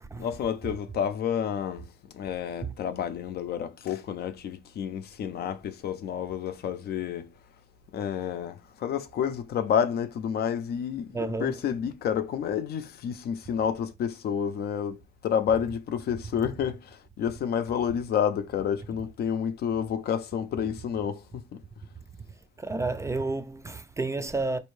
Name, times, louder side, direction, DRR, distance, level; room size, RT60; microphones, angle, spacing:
voice 1, 0.2-7.3 7.9-21.6, left 8 dB, 60° left, 0.5 m, -30 dB
voice 2, 11.1-11.5 22.6-24.6, right 3 dB, 15° right, 0.3 m, -31 dB
4.3 x 2.6 x 3.1 m
cardioid pair, 130°, 19 cm